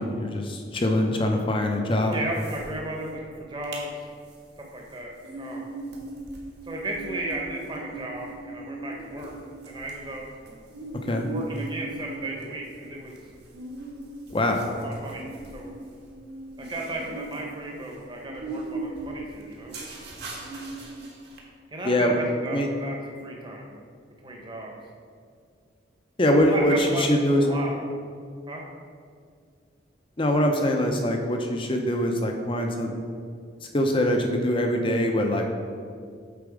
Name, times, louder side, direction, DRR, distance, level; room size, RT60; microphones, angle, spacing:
voice 1, 0.0-2.1 11.0-11.3 14.3-14.6 21.8-22.2 22.5-22.7 26.2-27.4 30.2-32.9 33.7-35.5, left 1 dB, 25° left, 3 dB, 0.6 m, -23 dB
voice 2, 2.1-4.1 4.6-5.7 6.7-9.4 9.6-10.2 11.3-13.2 14.4-15.7 16.6-19.8 21.7-23.8 24.2-24.7 26.4-27.8 28.5-28.6, right 1 dB, 25° right, -1 dB, 1.0 m, -35 dB
sound 1, 2.1-2.7 3.0-3.1 3.5-3.9 4.3-21.4, right 2 dB, 55° right, 1.2 m, -39 dB
6.9 x 4.3 x 5.0 m, 2.2 s
head